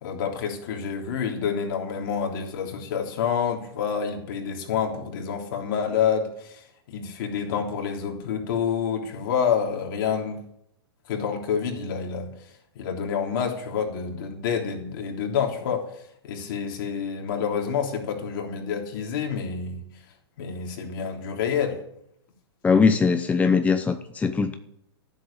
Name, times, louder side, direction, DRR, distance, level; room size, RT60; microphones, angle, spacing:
voice 1, 0.0-6.6 6.9-10.4 11.1-12.3 12.8-15.8 16.2-19.8 20.4-21.8, left 7 dB, 55° left, 1 dB, 3.3 m, -28 dB
voice 2, 22.6-24.5, left 5 dB, 10° left, 9 dB, 0.8 m, -21 dB
14.0 x 7.7 x 8.8 m, 0.75 s
hypercardioid pair, 110°, 13 cm